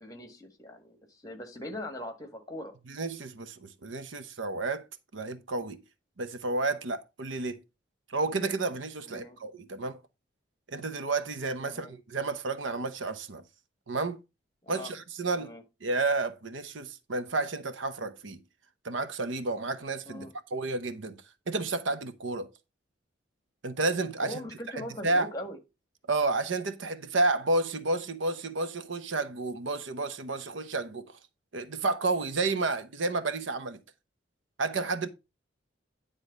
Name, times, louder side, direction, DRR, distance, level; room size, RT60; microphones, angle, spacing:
voice 1, 0.0-2.7 9.0-9.4 11.6-11.9 14.6-14.9 15.4-15.6 20.1-20.3 24.2-25.6, left 1 dB, 20° left, 1.6 m, -41 dB
voice 2, 2.9-4.8 5.1-5.8 6.2-7.6 8.1-10.0 10.7-13.4 13.9-14.2 14.7-15.5 15.8-18.4 18.8-21.2 21.5-22.5 23.6-24.4 24.8-25.3 26.1-31.2 31.5-33.8 34.6-35.1, right 3 dB, 75° right, 0.8 m, -31 dB
9.8 x 3.8 x 5.2 m
head